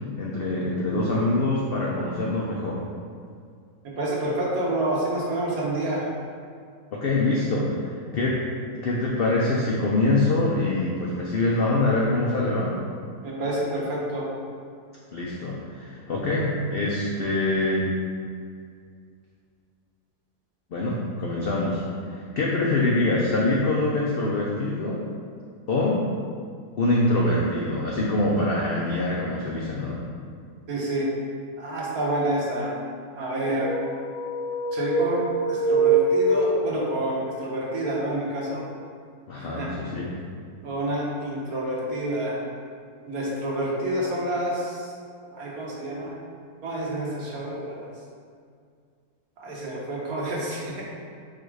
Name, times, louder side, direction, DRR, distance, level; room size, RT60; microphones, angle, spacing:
voice 1, 0.2-2.8 6.9-7.7 8.1-8.4 8.8-12.7 15.1-17.9 20.7-21.8 22.1-25.0 25.7-26.0 26.8-30.0 39.3-40.1, left 2 dB, 85° left, -4 dB, 0.5 m, -24 dB
voice 2, 4.0-6.0 13.2-14.2 30.7-31.1 31.6-32.7 33.2-33.7 34.7-35.2 35.5-38.6 39.4-39.7 40.6-42.4 43.1-44.9 45.3-46.1 46.6-47.8 49.4-50.8, right 1 dB, 65° right, -5 dB, 1.4 m, -28 dB
sound 1, 33.5-37.1, right 3 dB, 65° left, 0.8 m, -24 dB
4.8 x 2.4 x 4.6 m, 2.2 s
omnidirectional pair, 1.7 m